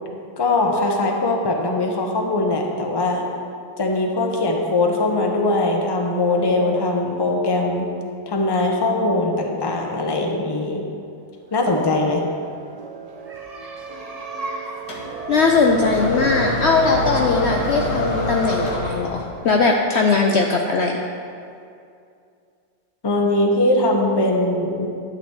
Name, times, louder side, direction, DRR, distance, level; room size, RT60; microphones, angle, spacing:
voice 1, 0.4-3.2 3.8-7.9 8.3-10.8 11.5-12.2 23.0-24.9, left 2 dB, 25° left, 1 dB, 0.6 m, -21 dB
sound 1, 11.4-21.0, right 5 dB, 85° right, 0.3 m, -36 dB
sound 2, 14.9-19.4, left 2 dB, 60° left, 1.9 m, -26 dB
voice 2, 15.3-20.9, left 4 dB, 80° left, 1 dB, 0.6 m, -19 dB
11.5 x 4.1 x 8.0 m, 2.4 s
omnidirectional pair, 1.9 m